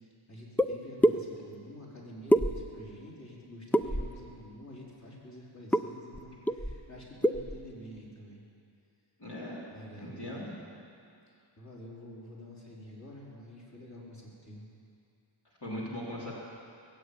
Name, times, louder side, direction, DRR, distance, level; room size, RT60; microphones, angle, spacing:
voice 1, 0.0-8.4 9.7-10.4 11.6-14.7, left 1 dB, 35° left, -5 dB, 3.9 m, -48 dB
sound 1, 0.6-0.7 1.0-1.2 2.3-2.9 3.7-4.2 5.7-5.8 6.1-6.2 6.5-6.9 7.2-7.6, equal, 5° left, 0.4 m, -25 dB
voice 2, 9.2-9.6 10.0-10.5 15.6-16.3, left 1 dB, 55° left, -7 dB, 3.5 m, -39 dB
20.5 x 8.1 x 8.6 m, 2.5 s
wide cardioid pair, 60°, 49 cm